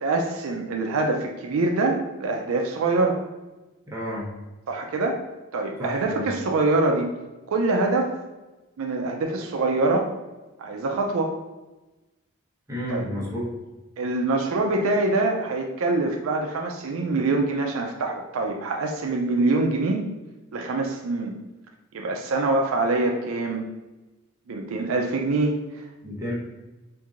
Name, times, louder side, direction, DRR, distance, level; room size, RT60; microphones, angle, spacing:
voice 1, 0.0-3.2 4.7-5.2 5.5-7.1 7.5-8.1 8.8-10.1 10.6-11.3 12.9-13.1 14.0-20.0 20.5-21.4 21.9-23.6 24.5-25.8, right 2 dB, 75° right, 3 dB, 0.4 m, -24 dB
voice 2, 3.9-4.3 5.8-6.3 12.7-13.5 26.0-26.3, equal, 15° right, -6 dB, 0.9 m, -31 dB
4.5 x 2.6 x 2.4 m, 1.1 s
head